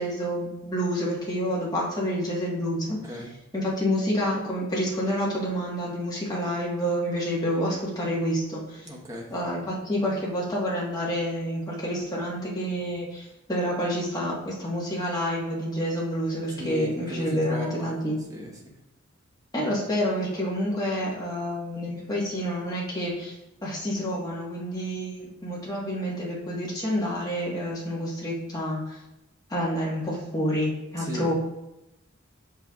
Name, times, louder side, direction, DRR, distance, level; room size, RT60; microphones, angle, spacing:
voice 1, 0.0-3.2 3.5-8.9 9.3-18.2 19.5-23.3 23.6-29.0 29.5-31.3, equal, 20° left, -5 dB, 1.4 m, -28 dB
voice 2, 2.9-3.3 8.8-9.3 16.5-18.0 18.3-18.8 31.0-31.3, equal, 15° right, -1 dB, 1.0 m, -37 dB
7.8 x 5.5 x 2.4 m, 0.94 s
head